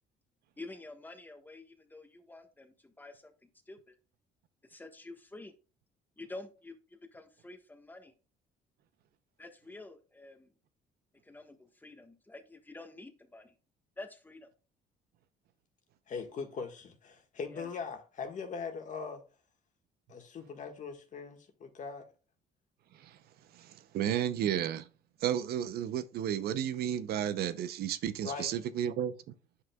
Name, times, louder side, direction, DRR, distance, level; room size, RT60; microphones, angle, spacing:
voice 1, 0.6-3.9 4.6-5.5 6.2-8.1 9.4-10.5 11.2-13.6 14.0-14.5 17.5-17.7, left 2 dB, 10° left, 1.3 m, -49 dB
voice 2, 16.1-19.2 20.1-22.1 28.2-28.5, left 5 dB, 50° left, 1.6 m, -40 dB
voice 3, 23.5-24.9 25.2-29.1, right 10 dB, 65° right, 0.7 m, -32 dB
9.5 x 5.7 x 2.3 m
cardioid pair, 110°, 17 cm